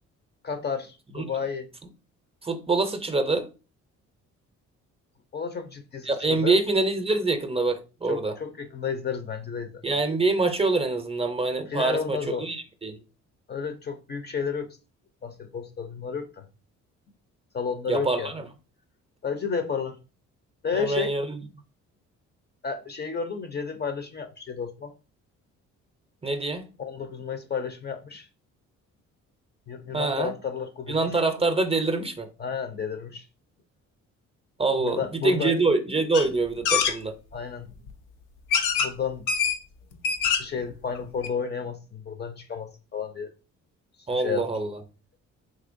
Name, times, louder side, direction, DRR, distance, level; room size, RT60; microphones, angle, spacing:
voice 1, 0.4-1.7 5.3-6.6 8.1-9.8 11.7-12.5 13.5-14.8 15.2-16.5 17.5-18.3 19.2-20.0 20.6-21.1 22.6-24.9 26.8-28.3 29.7-31.0 32.4-33.2 34.8-35.5 37.3-37.7 38.8-39.3 40.3-43.3 44.1-44.5, left 6 dB, 35° left, 0.5 m, -32 dB
voice 2, 2.4-3.5 6.0-8.3 9.8-13.0 17.9-18.4 20.7-21.4 26.2-26.7 29.9-30.3 30.9-32.3 34.6-37.2 44.1-44.8, right 3 dB, 20° right, 0.5 m, -25 dB
sound 1, 36.1-36.3 36.6-36.9 37.9-38.0 38.5-38.9 39.3-39.6 39.9-40.6 40.9-41.0 41.2-41.3, left 6 dB, 90° left, 0.5 m, -24 dB
3.7 x 2.8 x 2.5 m
cardioid pair, 90°, 30 cm